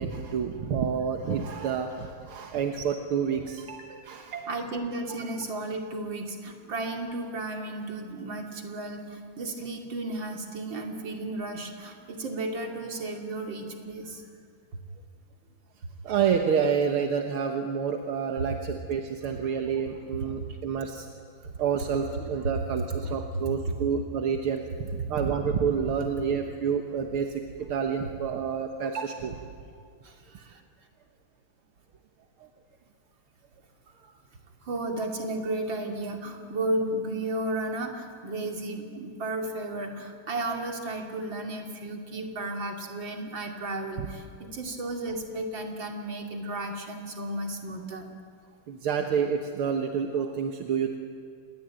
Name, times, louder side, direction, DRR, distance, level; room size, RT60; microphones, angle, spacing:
voice 1, 0.0-4.5 16.0-21.1 21.4-29.4 32.4-32.5 44.0-44.1 48.7-51.0, right 7 dB, 80° right, 4 dB, 2.2 m, -29 dB
voice 2, 4.5-14.2 23.7-23.8 30.0-30.6 34.6-48.1, right 2 dB, 60° right, 2 dB, 3.4 m, -33 dB
27.5 x 21.0 x 9.0 m, 2.2 s
omnidirectional pair, 2.4 m